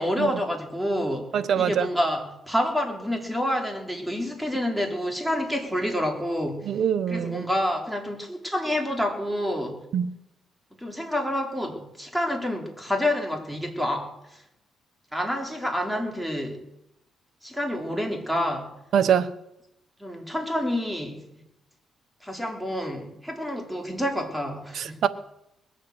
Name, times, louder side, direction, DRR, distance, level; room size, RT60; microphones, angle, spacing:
voice 1, 0.0-1.3 1.5-6.7 7.1-9.8 10.8-14.4 15.1-16.6 17.4-18.7 20.0-21.2 22.2-25.0, left 1 dB, 5° right, 2 dB, 3.5 m, -28 dB
voice 2, 1.3-1.9 6.7-7.5 9.9-10.1 18.9-19.3 24.8-25.1, right 8 dB, 65° right, 13 dB, 1.0 m, -23 dB
20.5 x 7.7 x 7.9 m, 0.84 s
cardioid pair, 90°, 0 cm